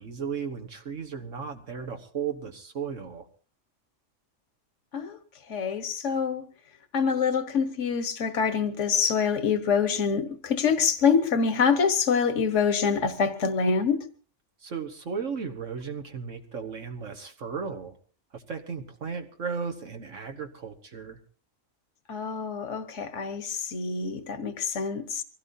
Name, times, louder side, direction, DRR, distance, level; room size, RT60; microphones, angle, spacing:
voice 1, 0.0-3.2 14.6-18.0 18.3-21.2, right 6 dB, 75° right, 1.7 m, -35 dB
voice 2, 5.5-6.4 6.9-14.0 22.1-25.2, left 6 dB, 70° left, 1.6 m, -25 dB
24.5 x 17.0 x 2.7 m
omnidirectional pair, 1.3 m